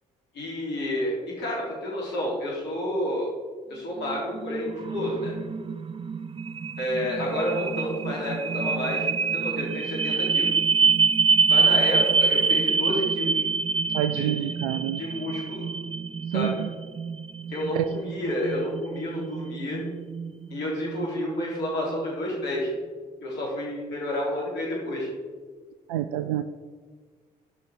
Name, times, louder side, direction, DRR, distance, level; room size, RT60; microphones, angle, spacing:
voice 1, 0.3-3.3 3.7-5.3 6.8-10.5 11.5-13.4 14.1-14.5 15.0-15.7 16.3-16.6 17.5-19.8 20.5-22.7 23.2-25.1, left 1 dB, 65° left, -3 dB, 3.5 m, -30 dB
sound 1, 4.0-22.0, right 5 dB, 30° right, 0.5 m, -26 dB
voice 2, 13.9-15.0 16.3-16.7 17.7-17.8 25.9-26.4, right 12 dB, 80° right, 10 dB, 0.4 m, -27 dB
13.5 x 5.9 x 4.9 m, 1.5 s
hypercardioid pair, 45°, 19 cm